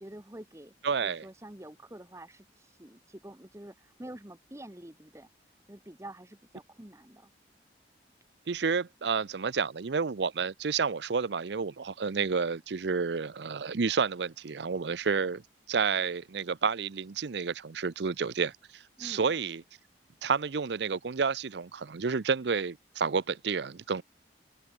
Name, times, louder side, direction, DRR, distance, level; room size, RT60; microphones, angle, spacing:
voice 1, 0.0-0.7 1.0-5.3 5.7-7.3 19.0-19.3, right 1 dB, 15° right, 1.2 m, -47 dB
voice 2, 0.8-1.2 8.5-15.4 15.7-19.6 20.2-24.0, right 5 dB, 75° right, 0.6 m, -30 dB
open air
head